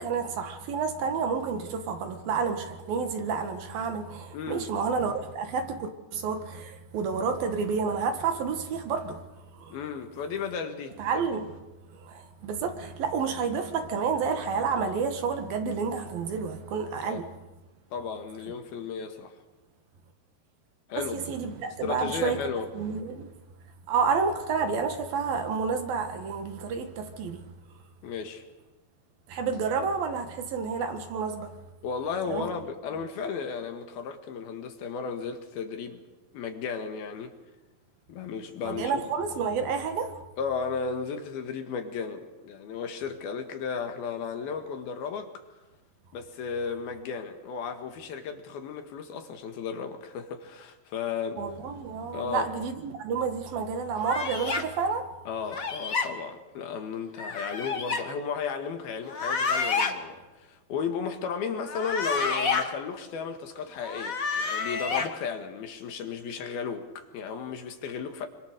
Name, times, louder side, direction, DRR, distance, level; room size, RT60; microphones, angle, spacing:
voice 1, 0.0-9.2 9.5-9.8 11.0-11.6 11.9-17.3 20.9-22.4 22.7-23.3 23.9-27.5 29.3-31.6 32.3-32.5 38.6-40.2 51.4-55.1, right 5 dB, 70° right, 3.5 m, -30 dB
voice 2, 4.3-4.7 9.7-11.0 17.1-17.2 17.9-19.3 20.9-21.2 21.8-22.7 28.0-28.4 31.8-36.0 36.3-37.4 38.1-39.0 40.4-45.3 46.1-51.4 52.1-52.5 55.3-68.3, left 6 dB, 70° left, 3.6 m, -34 dB
sound 1, 54.0-54.6 55.5-56.1 57.2-58.0 59.0-59.9 61.6-62.6 63.8-65.1, left 4 dB, 90° left, 0.7 m, -29 dB
27.0 x 25.5 x 6.8 m
omnidirectional pair, 4.6 m